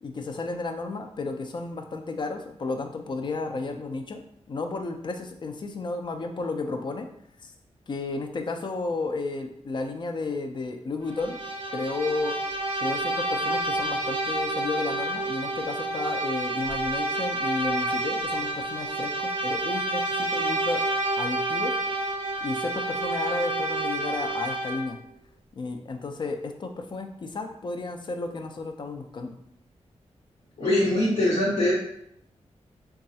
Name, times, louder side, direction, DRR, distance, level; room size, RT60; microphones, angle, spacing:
voice 1, 0.0-4.2 4.5-7.1 7.4-7.5 7.9-11.4 11.7-12.4 12.8-20.9 21.2-21.7 22.4-25.0 25.6-29.4, left 3 dB, 40° left, 5 dB, 0.3 m, -32 dB
Bowed string instrument, 11.1-25.0, right 2 dB, 50° right, 0.5 m, -29 dB
voice 2, 30.6-31.7, left 1 dB, 65° left, -8 dB, 1.0 m, -22 dB
3.9 x 2.3 x 2.7 m, 0.71 s
wide cardioid pair, 145°, 12 cm